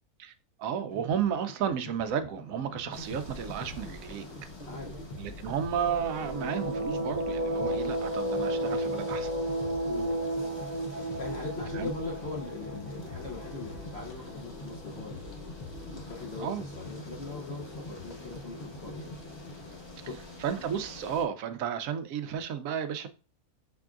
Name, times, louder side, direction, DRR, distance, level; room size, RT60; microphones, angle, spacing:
voice 1, 0.6-4.3 5.2-9.3 11.7-12.0 16.4-16.7 20.4-23.1, right 8 dB, 70° right, 0.9 m, -32 dB
sound 1, 0.9-19.8, left 2 dB, 75° left, 0.3 m, -45 dB
sound 2, 2.9-21.2, left 2 dB, 25° left, 0.6 m, -47 dB
voice 2, 4.6-5.1 9.9-10.2 10.9-15.4 15.6-19.1 19.6-20.2, left 3 dB, 50° left, 1.0 m, -41 dB
sound 3, 5.7-14.3, right 1 dB, 45° right, 0.6 m, -33 dB
5.9 x 3.5 x 2.4 m
omnidirectional pair, 1.6 m